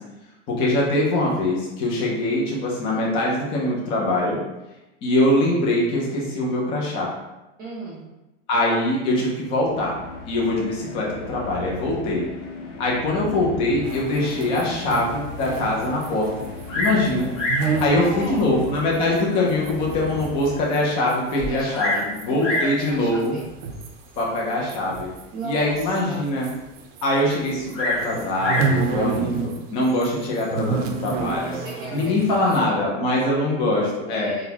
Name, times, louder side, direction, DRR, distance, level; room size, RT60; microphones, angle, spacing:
voice 1, 0.5-4.4 5.0-7.1 8.5-9.9 10.3-12.2 12.8-16.4 16.7-17.3 17.8-23.3 24.2-25.1 25.4-26.5 27.0-31.6 31.9-34.3, left 1 dB, 15° left, -3 dB, 0.3 m, -23 dB
voice 2, 7.6-8.0 17.6-18.5 21.3-23.4 25.3-26.2 31.4-32.9 34.1-34.4, right 1 dB, 25° right, -6 dB, 0.7 m, -35 dB
sound 1, 9.5-21.2, left 2 dB, 70° left, 0.8 m, -37 dB
sound 2, 13.8-20.8 21.1-27.1 27.3-29.6 29.8-32.7, right 5 dB, 85° right, 0.6 m, -30 dB
Bird vocalization bird call bird song, 16.7-17.1 17.3-17.7 18.6-18.7 19.3-19.4 19.9-20.0 20.2-20.3 21.4-22.1 22.4-22.8 23.8-24.1 27.7-28.8 29.8-30.3, left 1 dB, 40° left, 1.1 m, -26 dB
3.8 x 2.1 x 2.7 m, 1.0 s
supercardioid pair, 145°, 38 cm